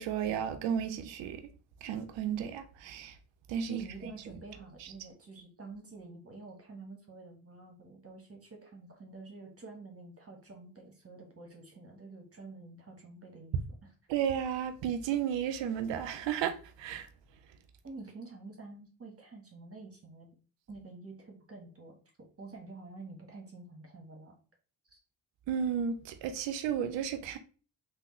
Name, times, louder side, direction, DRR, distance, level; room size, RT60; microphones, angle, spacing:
voice 1, 0.0-1.4 1.8-3.2 3.5-3.8 14.1-17.1 25.5-27.4, right 8 dB, 70° right, 0.6 m, -33 dB
voice 2, 3.7-13.9 17.8-20.3 20.7-24.3 24.8-25.0, right 3 dB, 30° right, 1.2 m, -48 dB
3.5 x 2.1 x 3.0 m
hypercardioid pair, 45°, 47 cm